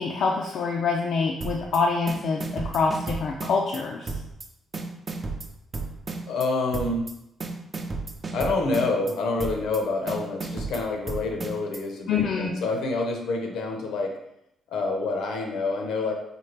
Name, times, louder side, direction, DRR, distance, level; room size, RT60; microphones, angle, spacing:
voice 1, 0.0-4.2 12.1-12.5, left 4 dB, 65° left, 0 dB, 0.4 m, -26 dB
sound 1, 1.4-1.8 2.1-3.8 4.1-4.5 4.7-6.5 6.7-7.1 7.4-9.1 9.4-9.8 10.1-11.8, right 3 dB, 35° right, 0.5 m, -33 dB
voice 2, 6.3-7.1 8.3-14.1 14.7-16.1, left 3 dB, 80° left, 2 dB, 0.8 m, -27 dB
4.4 x 2.4 x 3.3 m, 0.83 s
cardioid pair, 90°, 0 cm